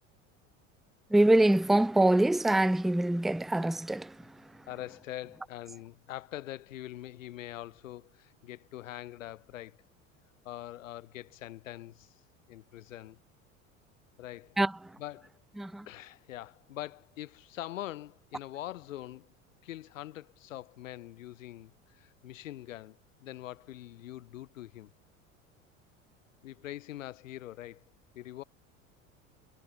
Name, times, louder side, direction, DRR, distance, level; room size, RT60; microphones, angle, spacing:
voice 1, 1.1-4.1 14.6-14.7 15.6-15.8, right 1 dB, ahead, 0.5 m, -24 dB
voice 2, 4.7-9.8 10.4-12.1 12.5-13.2 14.2-14.6 15.0-15.3 15.9-19.3 19.6-24.9 26.4-27.8 28.1-28.4, left 14 dB, 75° left, 6.8 m, -43 dB
hypercardioid pair, 75°, 39 cm